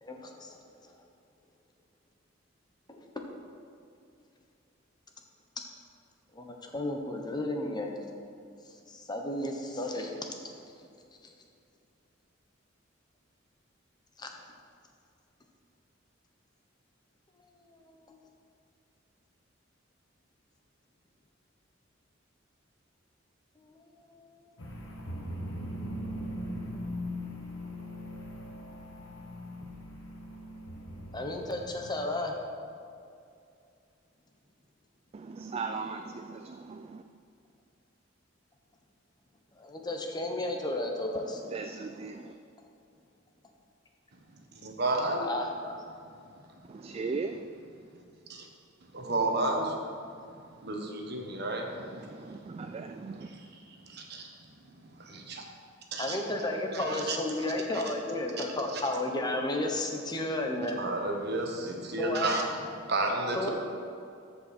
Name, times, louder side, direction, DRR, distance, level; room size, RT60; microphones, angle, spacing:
voice 1, 0.0-0.6 2.9-3.1 6.4-7.9 8.9-10.2 14.2-14.3 17.9-18.0 23.7-23.8 31.1-32.3 39.6-41.4 45.3-45.4 56.0-60.8 62.0-62.3 63.3-63.5, left 1 dB, 20° left, 2 dB, 0.9 m, -33 dB
sound 1, 24.6-32.2, equal, 80° left, 1.3 m, -40 dB
voice 2, 35.1-37.0 41.2-42.3 46.7-47.5 51.9-53.3, right 4 dB, 30° right, 6 dB, 0.3 m, -38 dB
voice 3, 44.5-45.3 48.3-48.5 48.9-50.0 50.6-54.3 54.6-55.4 55.9-56.2 56.7-57.5 57.7-57.9 58.4-58.5 58.7-58.8 60.8-63.5, right 2 dB, 55° right, 1 dB, 1.3 m, -33 dB
13.5 x 5.4 x 4.4 m, 2.4 s
head